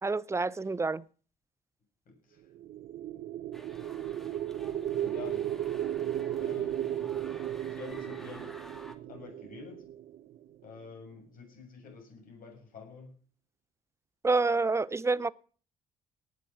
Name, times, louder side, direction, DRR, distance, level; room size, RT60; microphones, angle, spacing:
voice 1, 0.0-1.0 14.2-15.3, right 3 dB, 15° right, 0.7 m, -28 dB
voice 2, 2.1-2.4 4.9-5.5 6.4-7.1 7.7-8.5 9.1-9.8 10.6-13.2, left 5 dB, 55° left, 7.4 m, -48 dB
sound 1, 2.6-10.7, right 11 dB, 55° right, 0.9 m, -35 dB
sound 2, 3.5-9.0, equal, ahead, 2.4 m, -52 dB
19.0 x 7.2 x 5.9 m
hypercardioid pair, 50°, 17 cm